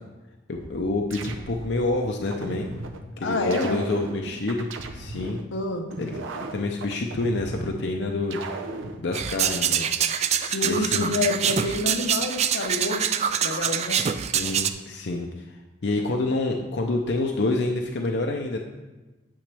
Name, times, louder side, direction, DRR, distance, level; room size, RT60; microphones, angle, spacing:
voice 1, 0.5-2.7 3.2-4.7 4.9-5.4 6.0-8.4 9.0-9.9 10.6-11.1 13.9-18.6, left 2 dB, 60° left, 2 dB, 0.5 m, -28 dB
sound 1, 0.5-1.8 2.3-3.0 3.5-5.4 5.9-7.8 8.3-9.0, right 3 dB, 90° right, 0.7 m, -36 dB
voice 2, 3.2-3.8 5.5-5.9 10.4-13.1 13.4-14.0, left 2 dB, 85° left, 4 dB, 0.9 m, -27 dB
sound 2, 9.1-14.7, right 8 dB, 35° right, 0.3 m, -25 dB
8.9 x 7.1 x 3.4 m, 1.2 s
head